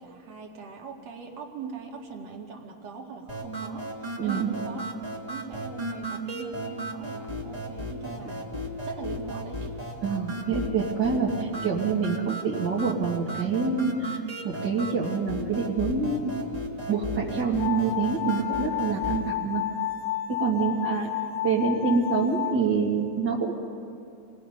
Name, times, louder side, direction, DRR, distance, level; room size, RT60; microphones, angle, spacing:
voice 1, 0.0-4.8 5.2-8.5 8.8-10.0 12.1-12.3 20.6-21.0, right 5 dB, 55° right, 1 dB, 3.1 m, -40 dB
sound 1, 3.3-19.3, equal, 15° right, 1.9 m, -35 dB
voice 2, 4.2-4.5 10.0-14.2 14.4-16.4 16.9-19.6 20.3-21.1 21.4-23.5, right 5 dB, 40° right, -5 dB, 2.1 m, -26 dB
sound 2, 17.6-22.6, left 12 dB, 80° left, 2.5 m, -31 dB
29.0 x 20.5 x 5.4 m, 2.6 s
omnidirectional pair, 3.8 m